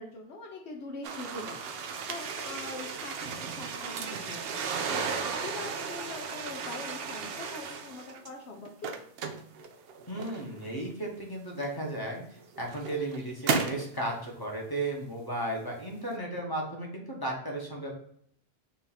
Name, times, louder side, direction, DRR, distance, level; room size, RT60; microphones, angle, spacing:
voice 1, 0.0-9.0, left 3 dB, 75° left, 1 dB, 1.0 m, -43 dB
sound 1, 1.0-8.3 8.7-10.7 11.6-11.7 12.4-13.9, right 5 dB, 65° right, 0.7 m, -35 dB
voice 2, 10.1-17.9, right 1 dB, 20° left, -1 dB, 1.0 m, -35 dB
4.4 x 2.6 x 4.0 m, 0.65 s
omnidirectional pair, 1.1 m